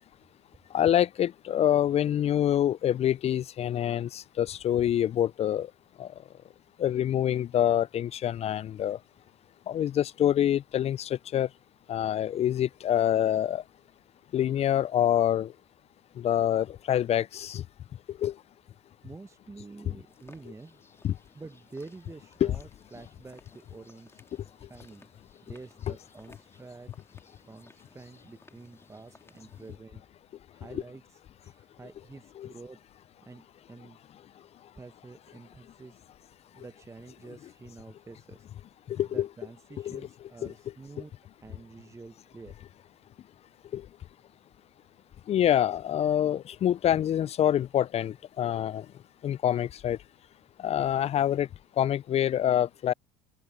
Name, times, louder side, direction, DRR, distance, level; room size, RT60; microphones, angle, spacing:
voice 1, 0.7-5.7 6.0-6.1 6.8-9.0 9.7-11.5 11.9-13.6 14.3-15.5 16.2-17.6 18.2-18.3 21.0-21.1 22.4-22.6 30.7-30.8 32.4-32.5 38.9-39.3 39.8-40.0 40.4-40.5 43.7-43.8 45.3-48.8 49.2-50.0 50.6-51.5 51.8-52.9, left 11 dB, 35° left, 0.4 m, -26 dB
voice 2, 19.0-20.8 21.3-24.2 24.7-25.1 25.4-26.9 27.4-30.0 30.5-32.8 33.2-34.0 34.8-36.0 36.5-38.5 39.1-41.1 41.4-42.6, right 3 dB, 15° right, 1.0 m, -48 dB
sound 1, 20.1-29.8, left 2 dB, 15° left, 2.1 m, -59 dB
open air
hypercardioid pair, 75°, 19 cm